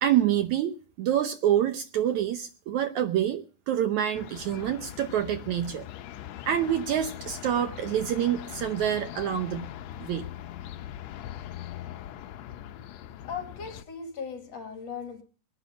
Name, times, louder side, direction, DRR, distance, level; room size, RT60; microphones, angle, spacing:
voice 1, 0.0-5.9 6.5-9.7 10.0-10.3, right 10 dB, 70° right, 1.9 m, -27 dB
sound 1, 4.1-13.8, left 11 dB, 75° left, 1.6 m, -41 dB
voice 2, 13.3-15.2, left 6 dB, 50° left, 2.9 m, -38 dB
22.5 x 9.6 x 5.1 m
omnidirectional pair, 4.0 m